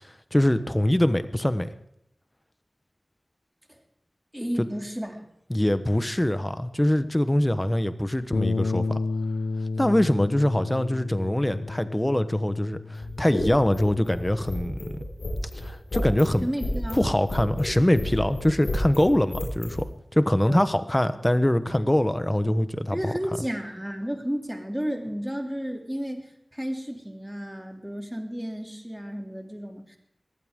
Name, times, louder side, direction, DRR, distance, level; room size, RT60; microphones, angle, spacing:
voice 1, 0.3-1.7 4.6-4.7 5.5-9.0 9.8-15.0 15.5-16.5 16.9-19.9 20.1-23.1, left 1 dB, 15° left, 11 dB, 1.0 m, -23 dB
voice 2, 4.3-5.3 16.4-17.1 20.4-20.7 22.9-30.0, equal, 5° right, 3 dB, 2.8 m, -32 dB
Bass guitar, 8.3-14.6, left 3 dB, 65° left, 0.6 m, -31 dB
sound 1, 12.9-19.8, left 1 dB, 85° left, 5.8 m, -32 dB
21.5 x 15.0 x 3.7 m, 0.73 s
wide cardioid pair, 65°, 0 cm